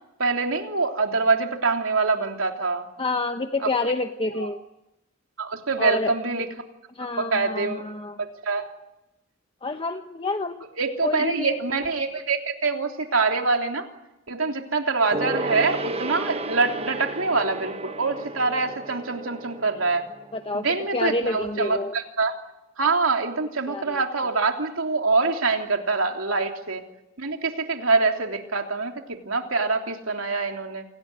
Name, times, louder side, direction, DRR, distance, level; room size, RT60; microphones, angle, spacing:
voice 1, 0.2-2.9 3.6-3.7 4.4-4.5 5.4-6.5 7.2-7.8 8.2-8.7 10.8-13.9 14.3-20.1 20.5-22.3 22.8-26.8 27.2-30.8, right 4 dB, 85° right, 3 dB, 3.3 m, -25 dB
voice 2, 3.0-4.6 5.8-6.1 6.9-8.2 9.6-10.6 11.0-11.6 20.3-20.6 20.9-22.0 23.7-24.0 26.3-26.4, left 2 dB, 25° left, 6 dB, 1.0 m, -28 dB
Gong, 15.1-21.0 21.3-21.4, right 2 dB, 30° right, 1.0 m, -33 dB
28.5 x 18.5 x 9.7 m, 0.94 s
head